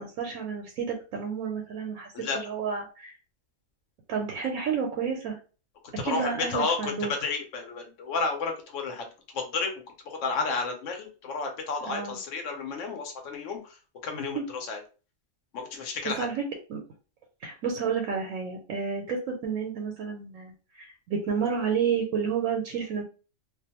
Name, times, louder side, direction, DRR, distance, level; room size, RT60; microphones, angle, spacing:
voice 1, 0.0-3.1 4.1-5.4 6.0-7.1 11.8-12.2 14.3-14.4 16.2-16.4 16.7-16.8 17.4-23.0, right 6 dB, 90° right, 2 dB, 1.0 m, -30 dB
voice 2, 6.0-9.1 9.3-9.7 10.0-13.8 14.0-14.4 14.7-14.8 15.5-16.3, left 4 dB, 70° left, 3 dB, 1.0 m, -31 dB
2.5 x 2.2 x 2.8 m, 0.35 s
omnidirectional pair, 1.4 m